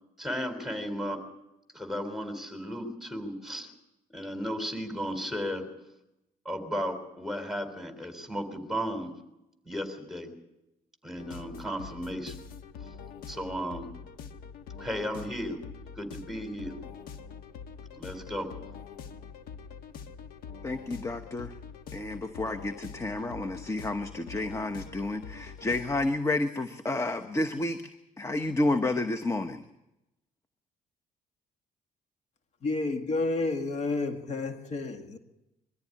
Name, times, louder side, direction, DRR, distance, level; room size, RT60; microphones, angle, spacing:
voice 1, 0.2-1.2 1.7-3.7 4.1-5.7 6.5-9.1 9.6-10.3 11.0-12.3 13.3-13.9 14.8-15.6 16.0-16.7 17.9-18.5, equal, ahead, 3.7 m, -34 dB
sound 1, 11.2-26.2, left 6 dB, 85° left, 1.4 m, -45 dB
voice 2, 20.6-21.5 21.9-27.8 28.2-29.6, left 2 dB, 20° left, 1.1 m, -30 dB
voice 3, 32.6-35.2, left 3 dB, 50° left, 2.0 m, -30 dB
22.5 x 14.0 x 9.9 m
cardioid pair, 125°, 15 cm